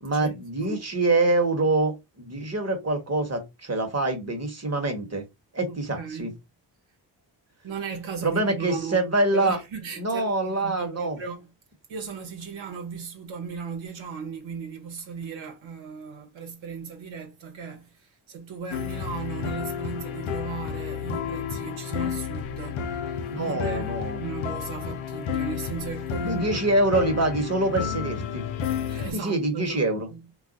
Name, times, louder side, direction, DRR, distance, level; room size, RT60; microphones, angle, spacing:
voice 1, 0.0-5.2 5.5-6.3 8.2-9.6 10.0-11.2 23.3-24.2 26.2-28.5 29.1-30.1, right 2 dB, 30° right, 1.2 m, -25 dB
voice 2, 5.7-6.3 7.6-9.0 9.3-11.5 11.9-26.7 28.9-30.4, right 6 dB, 70° right, 1.0 m, -37 dB
sound 1, 18.7-29.1, left 7 dB, 80° left, 0.6 m, -31 dB
2.4 x 2.2 x 3.9 m
supercardioid pair, 45°, 48 cm